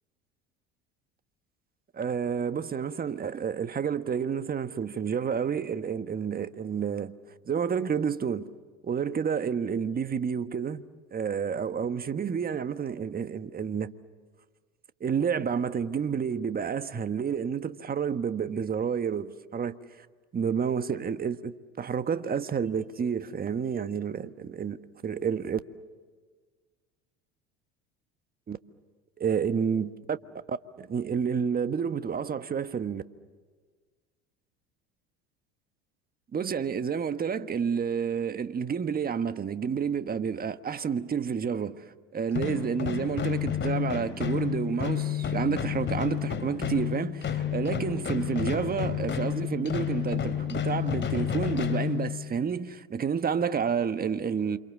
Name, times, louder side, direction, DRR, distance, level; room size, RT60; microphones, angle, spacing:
voice 1, 1.9-7.1 7.5-8.5 8.8-10.8 11.1-13.9 15.0-19.8 20.3-24.8 25.0-25.6 28.5-28.6 29.2-30.2 30.5-33.0 36.3-54.6, right 7 dB, 30° right, 1.4 m, -30 dB
sound 1, 42.3-52.5, left 9 dB, 40° left, 3.4 m, -30 dB
29.0 x 27.5 x 7.4 m
hypercardioid pair, 75°, 30 cm